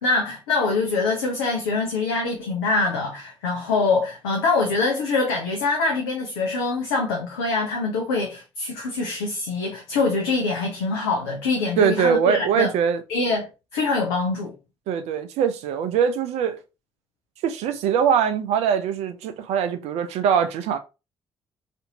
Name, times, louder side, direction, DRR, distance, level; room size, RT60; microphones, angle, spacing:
voice 1, 0.0-12.7 13.1-13.5 13.7-14.5, left 3 dB, 85° left, 0.5 m, -24 dB
voice 2, 11.8-13.0 14.9-16.6 17.4-20.8, right 7 dB, 65° right, 0.4 m, -22 dB
2.6 x 2.6 x 2.7 m
hypercardioid pair, 40°, 12 cm